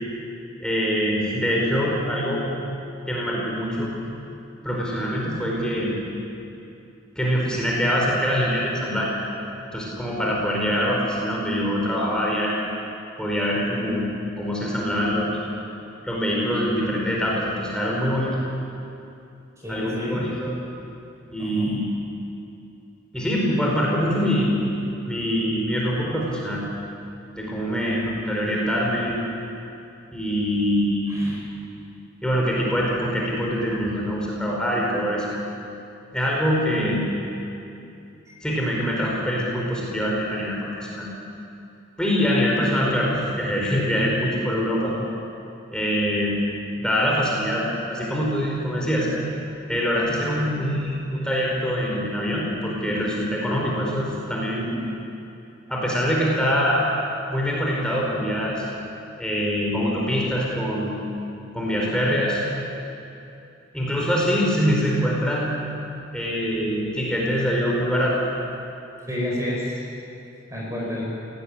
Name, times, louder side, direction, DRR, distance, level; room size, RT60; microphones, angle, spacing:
voice 1, 0.6-2.5 3.1-3.9 4.6-6.0 7.1-9.1 9.7-12.6 13.2-14.1 14.4-15.3 16.0-18.3 19.7-20.5 21.3-21.8 23.1-24.6 25.0-26.6 27.3-29.1 30.1-31.4 32.2-35.3 36.1-37.0 38.4-41.1 42.0-44.9 45.7-46.3 46.8-47.6 47.9-49.1 49.7-54.8 55.7-56.8 57.3-58.6 59.2-61.0 61.5-62.4 63.7-65.5 66.1-68.1, equal, 5° left, -4 dB, 4.8 m, -24 dB
voice 2, 19.6-20.2 21.4-21.7 27.7-28.7 31.1-31.4 36.6-36.9 38.3-38.5 69.1-69.8 70.5-71.0, left 1 dB, 15° right, -3 dB, 4.7 m, -31 dB
21.5 x 18.0 x 9.9 m, 2.7 s
head